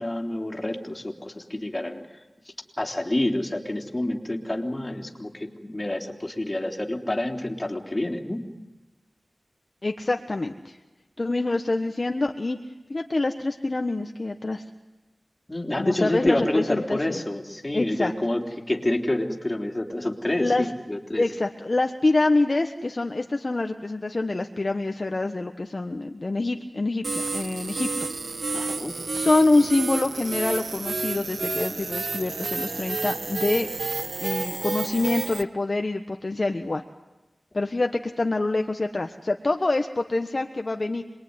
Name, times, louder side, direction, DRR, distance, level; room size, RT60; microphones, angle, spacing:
voice 1, 0.0-8.4 15.5-18.4 18.7-21.2 28.5-29.0, left 1 dB, 25° left, 2 dB, 3.6 m, -28 dB
voice 2, 9.8-10.8 11.2-12.6 12.9-14.6 15.8-17.2 17.7-18.1 20.4-20.7 21.2-27.9 28.4-28.6 29.1-33.7 34.2-36.8 37.5-41.0, left 2 dB, 45° left, 5 dB, 1.3 m, -26 dB
sound 1, 27.0-35.4, right 3 dB, 80° right, 1.2 m, -30 dB
27.0 x 22.0 x 9.7 m, 1.1 s
wide cardioid pair, 70°, 0 cm